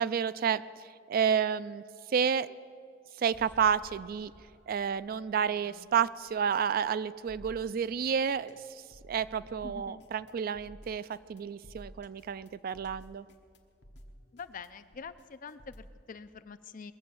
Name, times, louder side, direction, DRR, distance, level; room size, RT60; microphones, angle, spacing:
voice 1, 0.0-2.6 3.2-4.3 4.7-13.3, right 7 dB, 50° right, 16 dB, 0.3 m, -30 dB
sound 1, 3.3-10.4, right 1 dB, 80° right, 2.4 m, -61 dB
voice 2, 5.4-5.9 9.6-10.1 14.3-16.9, left 5 dB, 45° left, 11 dB, 0.5 m, -46 dB
sound 2, 7.3-16.0, equal, 65° left, 1.2 m, -53 dB
21.0 x 7.5 x 7.0 m, 2.2 s
head